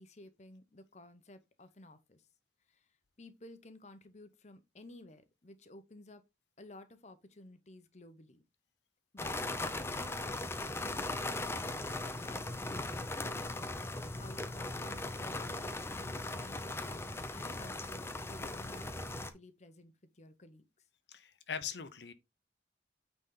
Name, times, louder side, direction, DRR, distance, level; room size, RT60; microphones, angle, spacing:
voice 1, 0.0-2.2 2.7-2.8 3.2-6.2 6.6-8.4 9.1-17.0 17.3-20.6, left 2 dB, 40° left, 0.9 m, -54 dB
sound 1, 9.2-19.3, left 2 dB, 15° left, 0.6 m, -39 dB
voice 2, 21.1-22.1, left 7 dB, 70° left, 0.8 m, -41 dB
8.8 x 4.1 x 3.8 m
head